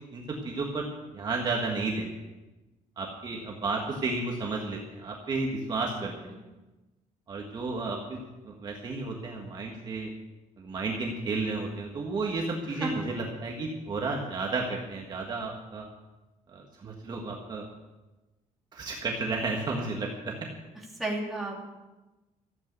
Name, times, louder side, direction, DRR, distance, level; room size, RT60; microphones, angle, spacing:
voice 1, 0.1-0.8 1.1-2.1 3.0-6.1 7.3-8.2 8.5-10.1 10.6-15.9 16.5-17.6 18.7-20.3, right 3 dB, 30° right, 0 dB, 1.6 m, -32 dB
voice 2, 6.0-6.4 12.8-12.9 21.0-21.7, right 2 dB, ahead, -4 dB, 2.8 m, -33 dB
14.0 x 8.6 x 8.0 m, 1.1 s
cardioid pair, 175°, 14 cm